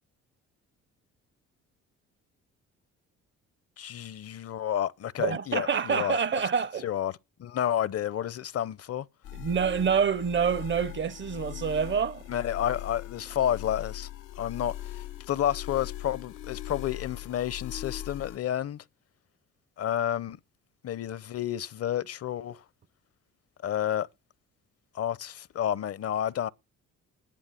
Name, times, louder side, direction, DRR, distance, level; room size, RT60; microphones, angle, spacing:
voice 1, 3.8-6.4 6.8-9.1 12.3-14.1 14.4-14.7 15.3-18.8 19.8-20.4 20.8-22.6 23.6-24.1 24.9-26.5, left 10 dB, 50° left, 0.7 m, -30 dB
voice 2, 5.2-6.9 9.3-12.2, right 7 dB, 40° right, 0.7 m, -27 dB
sound 1, 9.2-18.4, left 13 dB, 90° left, 1.0 m, -40 dB
10.5 x 10.5 x 8.9 m
cardioid pair, 90°, 30 cm